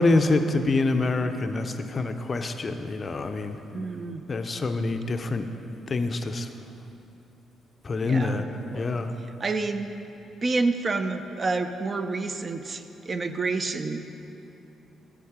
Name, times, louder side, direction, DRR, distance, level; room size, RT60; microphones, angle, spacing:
voice 1, 0.0-3.6 4.3-5.5 5.9-6.5 7.8-9.1, left 3 dB, 35° left, 7 dB, 0.5 m, -26 dB
voice 2, 3.7-4.3 8.0-8.9 9.4-9.9 10.4-14.3, right 3 dB, 35° right, 8 dB, 0.4 m, -29 dB
7.2 x 7.1 x 4.9 m, 3.0 s
cardioid pair, 90°, 0 cm